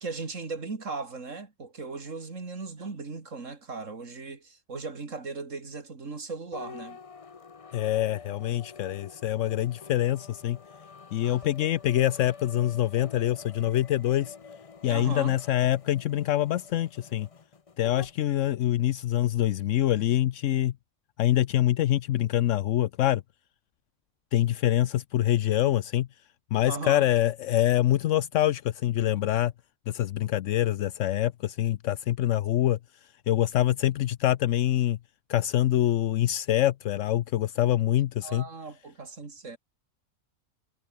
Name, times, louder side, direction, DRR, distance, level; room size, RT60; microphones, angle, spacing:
voice 1, 0.0-7.0 11.2-11.4 14.9-15.4 26.7-27.1 38.2-39.6, right 4 dB, 75° right, 3.0 m, -37 dB
sound 1, 6.5-18.2, left 5 dB, 30° left, 0.8 m, -47 dB
voice 2, 7.7-10.6 11.1-14.3 14.8-17.3 17.8-20.7 21.2-23.2 24.3-26.1 26.5-29.5 29.9-32.8 33.3-35.0 35.3-38.5, left 13 dB, 80° left, 1.0 m, -25 dB
omnidirectional pair, 1.3 m